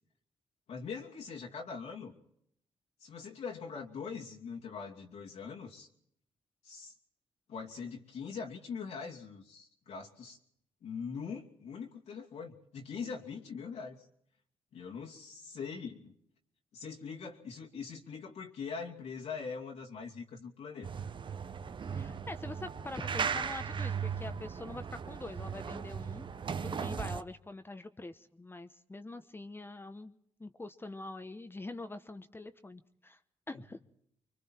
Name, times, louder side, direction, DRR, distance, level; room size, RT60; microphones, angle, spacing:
voice 1, 0.7-2.2 3.0-5.9 6.6-6.9 7.5-10.4 10.8-14.0 14.7-16.1 16.7-20.9, left 5 dB, 75° left, -2 dB, 2.7 m, -42 dB
sound 1, 20.8-27.2, right 6 dB, 45° right, 0.8 m, -37 dB
voice 2, 21.9-26.3 26.6-33.2 33.5-33.8, left 2 dB, 20° left, 9 dB, 1.0 m, -44 dB
26.0 x 23.5 x 4.5 m, 0.70 s
cardioid pair, 80°, 11 cm